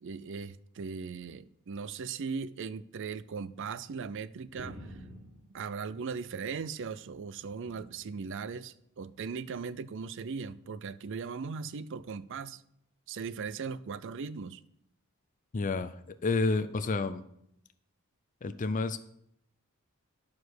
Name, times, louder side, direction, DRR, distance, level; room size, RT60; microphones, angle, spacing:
voice 1, 0.0-5.0 5.5-12.6 13.1-14.6, right 5 dB, 55° right, 0.4 m, -38 dB
sound 1, 4.6-6.8 7.2-8.1 9.0-9.3 10.3-10.5, equal, 35° right, 2.1 m, -50 dB
voice 2, 15.5-16.0 16.2-17.2 18.4-19.0, left 3 dB, 35° left, 0.5 m, -29 dB
11.5 x 4.8 x 6.2 m
head